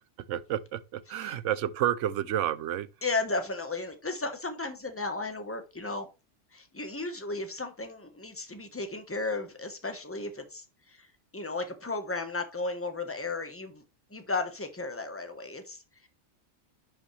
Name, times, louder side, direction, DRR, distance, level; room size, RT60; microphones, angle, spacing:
voice 1, 0.3-2.9, right 11 dB, 85° right, 0.9 m, -30 dB
voice 2, 3.0-6.1 6.5-11.1 11.3-13.8 14.1-16.1, left 3 dB, 10° left, 1.2 m, -34 dB
11.0 x 5.5 x 3.3 m
omnidirectional pair, 1.2 m